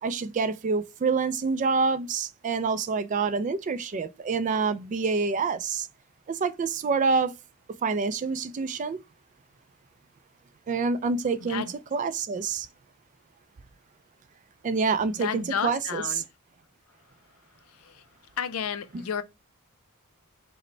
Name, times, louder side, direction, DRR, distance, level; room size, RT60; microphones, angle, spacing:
voice 1, 0.0-5.9 6.3-7.3 7.8-9.0 10.7-11.6 11.9-12.7 14.6-16.0, right 4 dB, 35° right, 0.3 m, -27 dB
voice 2, 15.1-16.2 17.8-18.0 18.4-19.2, left 7 dB, 65° left, 0.4 m, -32 dB
4.9 x 2.1 x 3.1 m
head